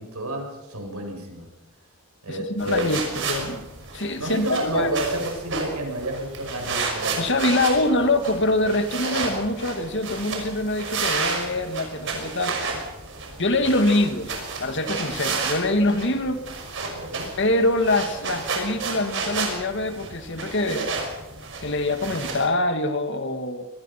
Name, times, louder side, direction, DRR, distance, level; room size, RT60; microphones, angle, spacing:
voice 1, 0.0-1.5 2.2-3.0 4.2-7.3 16.9-17.3, right 1 dB, 80° right, 3 dB, 6.8 m, -30 dB
voice 2, 2.3-4.9 7.2-12.6 13.4-16.4 17.4-20.9 21.6-23.6, left 2 dB, 55° left, 8 dB, 2.1 m, -24 dB
sound 1, 2.6-22.5, right 4 dB, 55° right, 5.9 m, -31 dB
26.0 x 20.0 x 5.9 m, 1.0 s
head